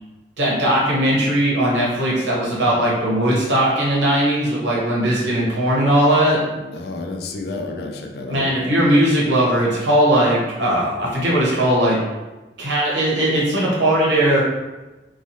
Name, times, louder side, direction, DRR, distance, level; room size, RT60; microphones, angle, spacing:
voice 1, 0.4-6.4 8.3-12.0 12.6-14.4, right 1 dB, 85° right, -5 dB, 1.0 m, -18 dB
voice 2, 6.5-8.7, left 2 dB, 60° left, 4 dB, 0.3 m, -31 dB
3.1 x 2.2 x 2.7 m, 1.1 s
head